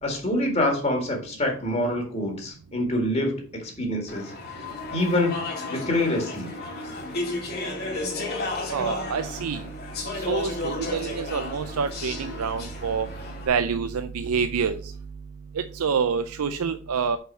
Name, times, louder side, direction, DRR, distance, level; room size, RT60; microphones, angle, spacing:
voice 1, 0.0-4.3 4.9-5.4 5.7-6.5, left 1 dB, 30° left, 2 dB, 1.7 m, -26 dB
Speech / Chatter, 4.1-13.5, left 2 dB, 45° left, 1.9 m, -33 dB
voice 2, 8.7-9.6 10.2-13.1 13.5-14.8 15.7-17.2, right 6 dB, 90° right, 9 dB, 0.5 m, -27 dB
5.7 x 5.6 x 5.4 m, 0.41 s
head